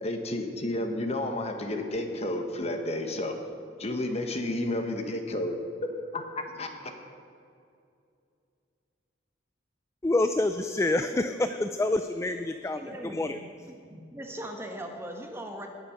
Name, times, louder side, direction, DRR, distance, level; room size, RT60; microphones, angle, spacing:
voice 1, 0.0-3.4 3.8-5.6 6.1-6.9, left 1 dB, 35° left, 5 dB, 1.3 m, -31 dB
voice 2, 10.0-13.4, left 2 dB, 15° left, 8 dB, 0.3 m, -27 dB
voice 3, 10.8-11.4 12.7-13.4 13.7-15.7, right 1 dB, 15° right, 3 dB, 1.3 m, -40 dB
19.5 x 6.9 x 5.9 m, 2.4 s
head